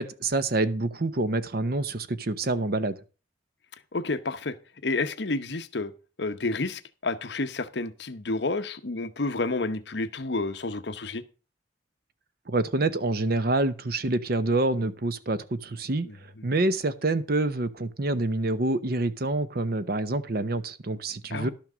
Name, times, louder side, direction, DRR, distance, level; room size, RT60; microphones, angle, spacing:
voice 1, 0.0-3.0 12.5-21.5, right 2 dB, 50° right, 0.8 m, -27 dB
voice 2, 3.9-4.6 4.8-5.9 6.2-11.2 16.0-16.5 21.3-21.5, left 3 dB, 60° left, 0.8 m, -30 dB
11.5 x 6.1 x 6.1 m
head